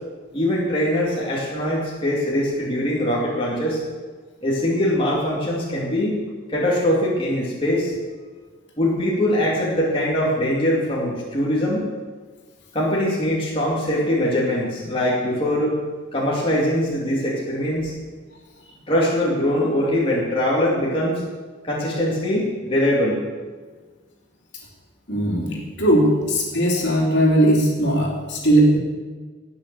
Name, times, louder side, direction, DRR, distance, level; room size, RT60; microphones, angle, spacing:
voice 1, 0.3-3.8 4.4-6.2 6.5-7.9 8.8-11.9 12.7-15.8 16.1-17.9 18.9-21.2 21.6-23.2, left 1 dB, 25° left, -5 dB, 2.6 m, -22 dB
voice 2, 25.1-28.8, right 1 dB, 60° left, -2 dB, 3.2 m, -18 dB
18.0 x 6.9 x 7.0 m, 1.4 s
head